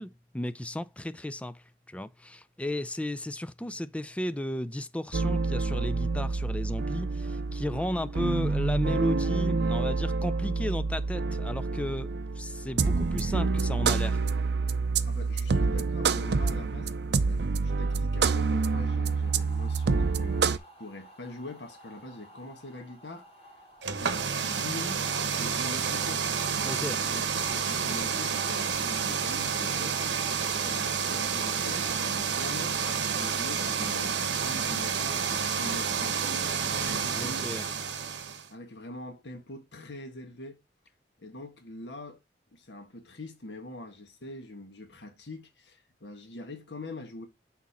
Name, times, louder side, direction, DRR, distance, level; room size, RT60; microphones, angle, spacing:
voice 1, 0.0-14.2 26.7-27.0 37.2-37.6, left 1 dB, 5° left, 0.4 m, -34 dB
sound 1, 5.1-20.6, right 4 dB, 70° right, 0.6 m, -27 dB
voice 2, 15.1-23.3 23.9-26.3 26.9-30.0 30.5-37.7 38.5-40.6 41.2-42.2 42.5-47.3, left 1 dB, 75° left, 1.5 m, -43 dB
sound 2, 18.2-27.3, equal, 35° left, 2.6 m, -55 dB
sound 3, 23.8-38.5, right 6 dB, 90° right, 0.9 m, -29 dB
6.3 x 4.2 x 4.1 m
head